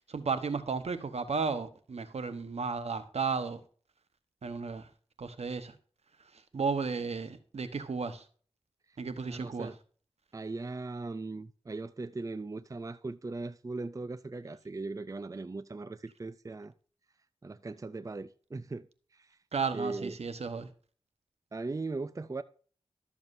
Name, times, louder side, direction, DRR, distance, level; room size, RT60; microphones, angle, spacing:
voice 1, 0.1-3.6 4.4-4.9 5.2-5.7 6.3-8.2 9.0-9.7 19.5-20.7, right 5 dB, 75° right, 1.1 m, -34 dB
voice 2, 9.2-9.8 10.3-16.7 17.4-18.9 19.1-19.4 19.7-20.1 21.5-22.4, right 3 dB, 30° right, 0.5 m, -39 dB
12.5 x 7.2 x 2.7 m
cardioid pair, 55°, 11 cm